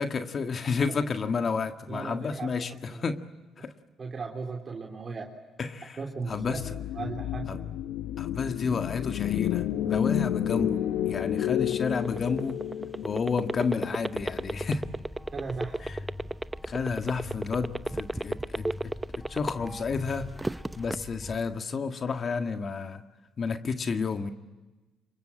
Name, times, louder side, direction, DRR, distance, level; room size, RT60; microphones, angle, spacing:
voice 1, 0.0-3.2 3.6-3.7 5.6-6.0 6.3-6.8 7.5-7.6 8.2-12.6 13.0-14.9 15.8-16.0 16.6-23.0 23.4-24.3, left 5 dB, 50° left, 7 dB, 1.8 m, -31 dB
voice 2, 1.9-2.5 2.9-3.0 4.0-5.3 6.0-6.4 6.9-7.6 15.3-15.8, right 4 dB, 45° right, 1 dB, 3.6 m, -36 dB
sound 1, 6.3-14.7, left 11 dB, 75° left, 0.9 m, -31 dB
sound 2, 11.6-19.8 20.2-21.0, right 2 dB, 15° right, 0.8 m, -31 dB
sound 3, 14.1-21.3, left 1 dB, 10° left, 3.1 m, -43 dB
27.5 x 23.5 x 8.8 m, 1.2 s
supercardioid pair, 55°, 0 cm